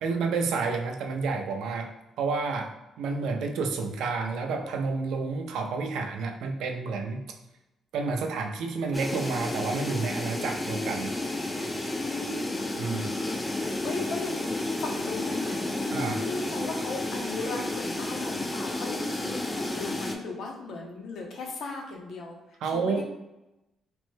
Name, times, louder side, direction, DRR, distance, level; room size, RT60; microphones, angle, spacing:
voice 1, 0.0-1.9 2.2-7.2 7.9-11.1 12.8-13.1 15.9-16.2 22.6-23.0, right 4 dB, 80° right, 3 dB, 0.4 m, -30 dB
sound 1, 8.9-20.2, left 2 dB, 15° left, 0.4 m, -32 dB
voice 2, 12.1-12.7 12.9-13.4 13.8-22.3 22.6-23.0, left 3 dB, 70° left, 1 dB, 0.7 m, -37 dB
3.0 x 2.1 x 3.1 m, 0.96 s
cardioid pair, 90°, 0 cm